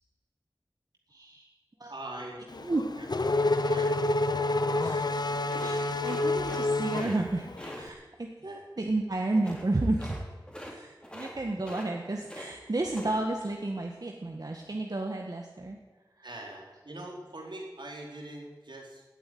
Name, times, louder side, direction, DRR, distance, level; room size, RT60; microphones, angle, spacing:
voice 1, 1.1-1.5 1.8-1.9 2.6-2.8 4.8-5.1 5.6-7.5 7.7-10.2 10.7-15.8 16.2-16.3, right 2 dB, 55° right, 2 dB, 1.6 m, -32 dB
voice 2, 1.9-2.5 3.0-3.1 3.6-4.0 8.4-8.6 16.2-19.0, right 1 dB, 75° right, -1 dB, 3.9 m, -42 dB
Race car auto racing / Accelerating revving vroom, 2.5-7.8, left 2 dB, 60° left, 0.9 m, -28 dB
sound 1, 5.5-6.7 6.9-7.2 7.6-7.8 9.3-9.7 10.0-10.2 10.5-10.8 11.0-11.4 11.6-12.5 12.8-13.2, equal, 10° left, 3.2 m, -43 dB
17.5 x 8.5 x 9.3 m, 1.2 s
wide cardioid pair, 65°, 8 cm